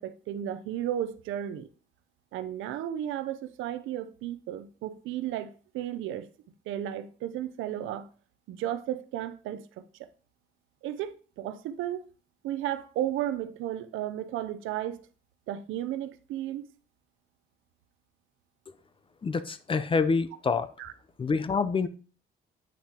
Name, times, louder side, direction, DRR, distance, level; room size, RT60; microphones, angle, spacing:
voice 1, 0.0-1.7 2.3-6.3 6.7-8.1 8.5-10.1 10.8-12.1 12.4-15.0 15.5-16.7 20.8-20.9, right 11 dB, 90° right, 0.5 m, -34 dB
voice 2, 19.2-20.7 21.2-21.9, left 4 dB, 25° left, 0.5 m, -26 dB
8.4 x 5.8 x 2.8 m
cardioid pair, 90°, 20 cm